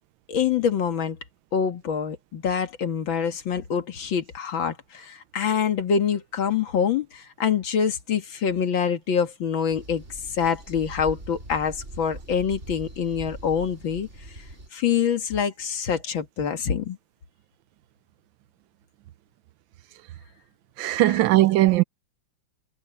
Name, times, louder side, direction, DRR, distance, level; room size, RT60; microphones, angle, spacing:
voice 1, 0.3-1.2 1.5-10.0 10.3-14.1 14.7-17.0 21.0-21.1, left 7 dB, 80° left, 2.4 m, -25 dB
sound 1, 9.7-14.7, right 1 dB, 35° right, 4.9 m, -41 dB
voice 2, 20.8-21.8, right 16 dB, 80° right, 1.4 m, -19 dB
omnidirectional pair, 2.1 m